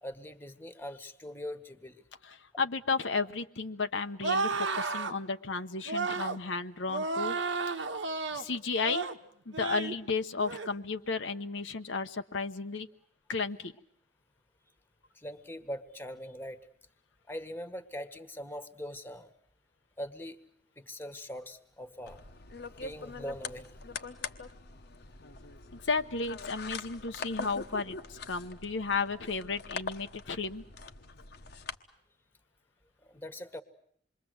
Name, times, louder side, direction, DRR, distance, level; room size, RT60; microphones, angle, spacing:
voice 1, 0.0-2.0 15.1-16.7 17.3-19.3 20.0-20.4 20.8-22.2 22.7-23.8 33.0-33.6, equal, 10° left, 10 dB, 1.5 m, -42 dB
voice 2, 2.2-7.3 8.3-9.1 9.5-12.9 13.3-13.7 25.9-30.6, left 4 dB, 85° left, 7 dB, 1.0 m, -33 dB
sound 1, 4.2-5.1 5.9-6.4 6.9-8.4 8.8-9.2 9.5-10.0 10.4-10.7, right 4 dB, 80° right, 1.3 m, -32 dB
sound 2, 22.1-31.7, left 4 dB, 60° left, 1.2 m, -43 dB
27.5 x 22.5 x 7.9 m, 0.65 s
head